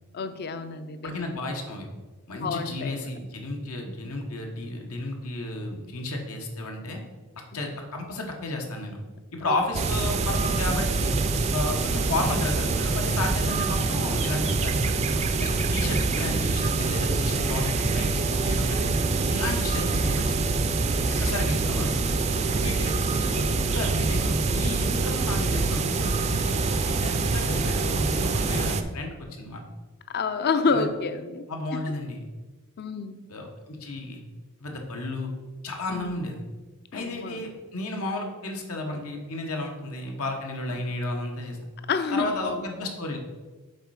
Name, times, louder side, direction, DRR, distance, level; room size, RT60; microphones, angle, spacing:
voice 1, 0.1-1.2 2.4-3.1 9.5-9.6 15.5-15.7 21.0-21.3 22.5-23.0 30.1-31.5 31.9-32.0 32.8-33.2 35.9-36.1 36.9-37.4 41.9-42.6, left 4 dB, 50° left, 10 dB, 0.5 m, -29 dB
voice 2, 1.0-1.9 2.3-7.0 7.5-9.0 9.3-11.1 11.5-15.0 15.4-18.8 19.2-20.5 21.2-22.0 22.5-26.6 26.9-29.6 30.7-30.9 31.5-32.2 33.3-34.2 34.6-35.3 35.6-36.4 36.9-41.6 42.1-43.2, left 2 dB, 85° left, 2 dB, 1.2 m, -33 dB
sound 1, 9.7-28.8, right 3 dB, 30° right, 0.4 m, -25 dB
6.6 x 4.3 x 4.8 m, 1.3 s
head